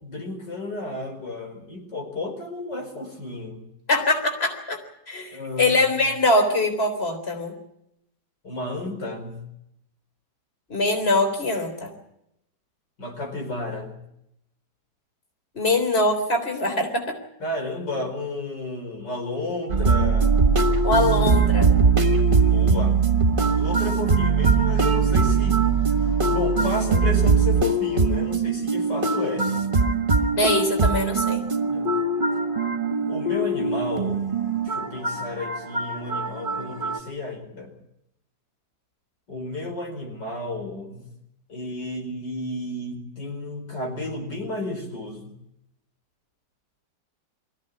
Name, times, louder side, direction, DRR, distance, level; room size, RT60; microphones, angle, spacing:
voice 1, 0.0-3.7 5.3-5.8 8.4-9.4 13.0-13.9 17.4-20.4 22.4-23.0 23.5-25.7 26.0-29.5 31.7-31.9 33.1-34.4 34.6-37.7 39.3-41.1 41.5-45.3, left 2 dB, 85° left, 3 dB, 5.4 m, -32 dB
voice 2, 3.9-4.8 5.1-7.5 10.7-11.9 15.6-17.1 20.8-21.7 30.4-31.4, left 2 dB, 35° left, 4 dB, 4.0 m, -23 dB
sound 1, 19.7-37.0, right 4 dB, 30° right, 1.7 m, -21 dB
24.0 x 15.5 x 9.5 m, 0.81 s
omnidirectional pair, 1.8 m